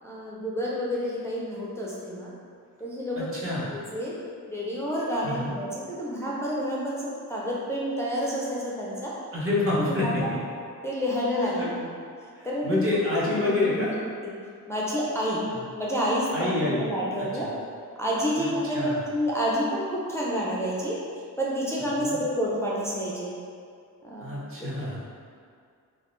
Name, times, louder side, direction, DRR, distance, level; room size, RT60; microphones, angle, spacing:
voice 1, 0.0-2.3 2.8-4.2 4.5-9.1 9.7-10.3 10.8-11.9 12.4-14.3 14.7-15.5 15.8-17.5 18.0-21.0 21.4-23.3 24.0-24.4, equal, 10° left, -7 dB, 0.3 m, -29 dB
voice 2, 3.2-3.7 5.2-5.5 9.3-10.2 11.6-11.7 12.4-13.9 16.3-16.8 17.2-17.5 18.4-18.5 18.7-19.0 22.0-22.2 24.2-25.0, left 2 dB, 35° right, -7 dB, 0.7 m, -27 dB
2.4 x 2.1 x 3.0 m, 2.3 s
cardioid pair, 105°, 36 cm